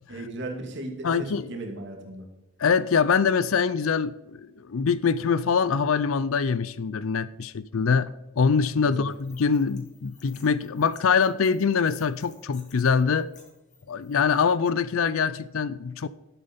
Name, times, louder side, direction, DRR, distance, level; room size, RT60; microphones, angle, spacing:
voice 1, 0.1-2.3 8.8-9.0, right 2 dB, 55° right, 2.4 m, -36 dB
voice 2, 1.0-1.5 2.6-13.3 13.9-16.1, left 6 dB, 70° left, 0.5 m, -24 dB
sound 1, 9.1-14.7, left 6 dB, 35° left, 2.4 m, -57 dB
12.0 x 9.1 x 5.2 m
head